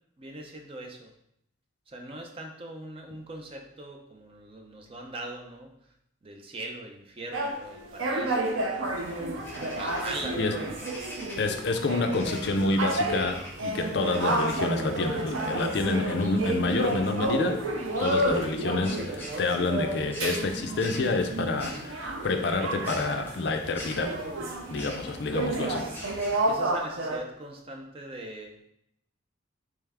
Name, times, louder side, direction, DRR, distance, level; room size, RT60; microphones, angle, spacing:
voice 1, 0.2-1.1 1.9-5.7 6.2-8.9 9.7-10.9 25.0-25.1 25.6-26.0 26.5-28.5, right 1 dB, 30° right, 2 dB, 0.5 m, -41 dB
sound 1, 7.3-23.3 23.6-27.2, right 2 dB, 80° right, 0.5 m, -31 dB
sound 2, 8.8-26.5, left 1 dB, 10° left, 0.7 m, -45 dB
voice 2, 11.4-17.6 18.0-24.2 24.7-25.8, left 3 dB, 55° left, 5 dB, 0.4 m, -28 dB
3.5 x 3.1 x 3.4 m, 0.75 s
head